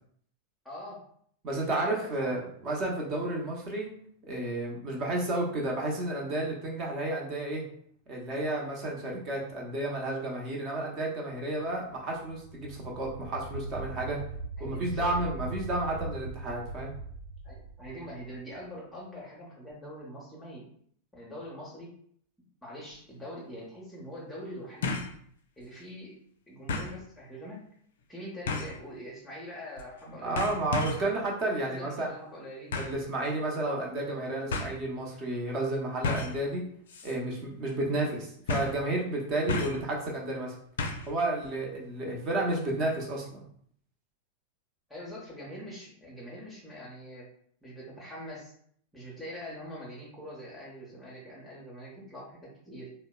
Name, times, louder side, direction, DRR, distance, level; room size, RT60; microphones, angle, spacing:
voice 1, 0.6-1.0 1.6-2.3 14.6-15.2 17.4-20.7 21.1-21.9 22.6-25.0 25.6-26.1 26.5-27.6 28.1-30.5 31.6-32.8 41.4-41.6 44.9-47.3 47.6-48.5 48.9-52.9, equal, 5° left, -5 dB, 0.7 m, -43 dB
voice 2, 1.4-3.9 4.2-7.6 8.1-14.2 14.6-16.9 30.2-32.1 32.8-36.6 37.0-40.5 41.1-43.5, right 2 dB, 35° right, -1 dB, 0.8 m, -31 dB
sound 1, 11.9-18.7, right 3 dB, 80° right, 0.3 m, -40 dB
sound 2, 22.9-23.0 24.8-25.2 25.6-25.7 26.7-27.0 28.5-28.8 29.8-30.0 30.4-31.1 32.7-33.0 34.0-34.1 34.5-34.7 36.0-36.4 36.9-37.2 37.4-37.5 38.5-38.8 39.5-39.9 40.8-41.1 41.4-41.5, left 3 dB, 60° left, 0.4 m, -32 dB
3.7 x 2.1 x 2.2 m, 0.62 s
figure-of-eight pair, 90°, 0 cm